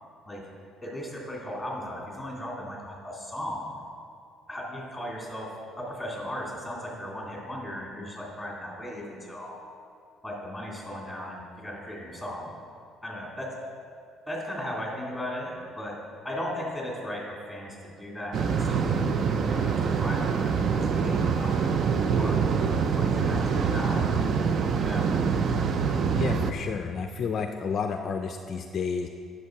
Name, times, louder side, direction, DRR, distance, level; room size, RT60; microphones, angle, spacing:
voice 1, 0.8-3.7 4.5-9.5 10.2-12.5 13.0-13.5 14.3-16.0 16.2-21.6 21.9-24.1 24.8-25.1, left 1 dB, ahead, -3 dB, 2.4 m, -37 dB
sound 1, 18.3-26.5, right 6 dB, 45° right, 0.5 m, -25 dB
voice 2, 26.1-29.1, left 6 dB, 45° left, 5 dB, 0.4 m, -31 dB
10.0 x 6.5 x 4.6 m, 2.4 s
cardioid pair, 120°, 0 cm